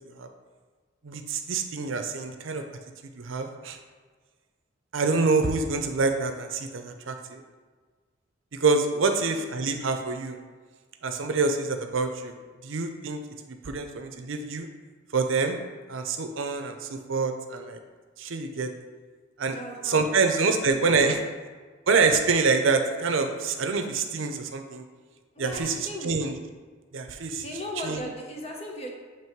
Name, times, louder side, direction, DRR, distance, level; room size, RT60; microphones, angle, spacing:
voice 1, 1.0-2.6 3.2-3.8 4.9-7.4 8.5-10.4 11.0-12.3 12.6-13.2 13.6-14.7 15.1-15.6 15.9-17.8 18.2-18.7 19.4-19.6 19.8-21.2 21.9-24.8 25.4-26.3 26.9-27.4 27.8-28.0, right 4 dB, 75° right, 6 dB, 0.6 m, -26 dB
voice 2, 19.4-20.1 20.6-20.7 21.0-21.2 25.3-26.2 27.4-28.9, left 1 dB, 30° left, 0 dB, 0.9 m, -37 dB
7.4 x 3.1 x 4.5 m, 1.5 s
head